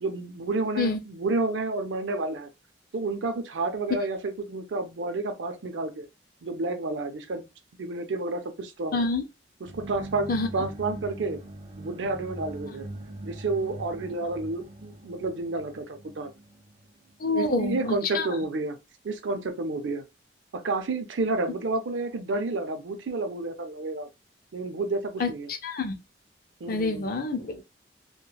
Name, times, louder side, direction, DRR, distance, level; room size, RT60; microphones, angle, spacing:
voice 1, 0.0-2.5 2.9-6.1 6.4-7.4 7.8-9.1 9.6-11.4 11.8-12.9 13.2-16.3 17.3-18.8 19.0-20.0 20.5-24.1 24.5-25.5 26.6-27.1, right 3 dB, 85° right, 0.5 m, -30 dB
voice 2, 8.9-9.2 10.3-10.5 17.2-18.3 25.2-25.9 26.7-27.6, left 3 dB, 50° left, 0.5 m, -27 dB
sound 1, 9.6-17.4, right 1 dB, 35° right, 0.4 m, -42 dB
3.1 x 2.2 x 2.3 m
head